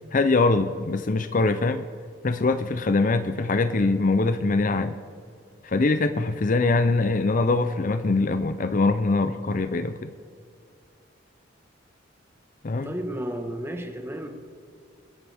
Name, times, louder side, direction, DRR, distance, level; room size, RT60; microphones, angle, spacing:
voice 1, 0.1-1.8 2.2-5.0 5.6-10.1 12.6-12.9, left 3 dB, 40° left, 11 dB, 0.5 m, -23 dB
voice 2, 12.8-14.3, right 1 dB, 10° right, 4 dB, 1.2 m, -32 dB
25.0 x 10.5 x 3.5 m, 2.3 s
head